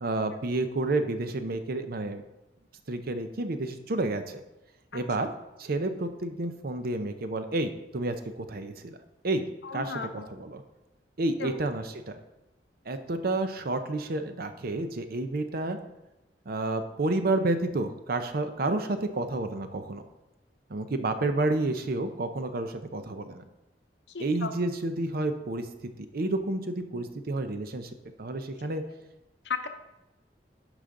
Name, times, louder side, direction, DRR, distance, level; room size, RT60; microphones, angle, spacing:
voice 1, 0.0-2.2 2.9-4.4 4.9-5.3 5.6-8.7 9.2-9.4 9.7-10.6 11.2-12.2 12.9-15.8 16.5-20.0 20.7-23.4 24.2-25.7 26.0-27.9 28.2-28.8, right 2 dB, 60° right, 9 dB, 0.7 m, -30 dB
voice 2, 9.6-10.3 11.4-11.5 24.1-24.5 29.4-29.7, left 5 dB, 70° left, 7 dB, 0.8 m, -35 dB
11.0 x 5.0 x 3.8 m, 0.99 s
head